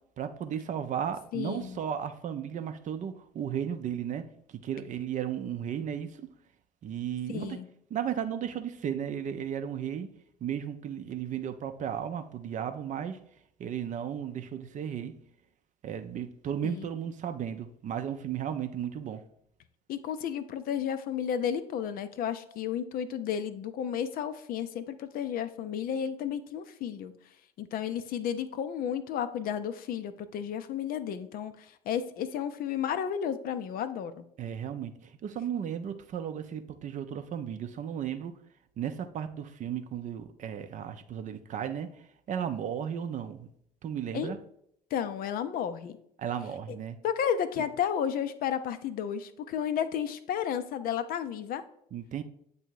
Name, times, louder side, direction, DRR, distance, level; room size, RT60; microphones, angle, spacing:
voice 1, 0.2-4.2 4.6-6.3 6.8-7.6 7.9-10.1 10.4-13.2 13.6-15.1 15.8-19.2 34.4-38.3 38.8-41.9 42.3-43.5 43.8-44.4 46.2-47.0 51.9-52.2, right 9 dB, 40° right, 0.5 m, -34 dB
voice 2, 1.3-1.8 7.3-7.7 16.6-16.9 19.9-27.1 27.6-34.2 44.1-44.3 44.9-45.9 46.7-46.8 47.0-51.6, left 8 dB, 45° left, 0.5 m, -32 dB
8.0 x 2.7 x 4.6 m
figure-of-eight pair, 60°, 20 cm